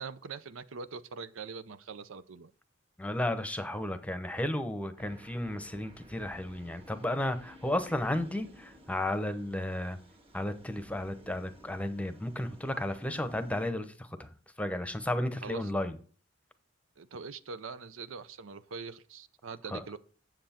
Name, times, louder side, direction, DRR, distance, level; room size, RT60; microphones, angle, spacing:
voice 1, 0.0-2.5 15.4-15.7 17.0-20.0, right 5 dB, 85° right, 0.6 m, -43 dB
voice 2, 3.0-10.0 10.3-14.3 14.6-16.0 19.7-19.8, left 1 dB, 5° left, 0.8 m, -33 dB
sound 1, 5.0-13.7, equal, 30° right, 1.5 m, -55 dB
7.8 x 7.6 x 4.3 m
head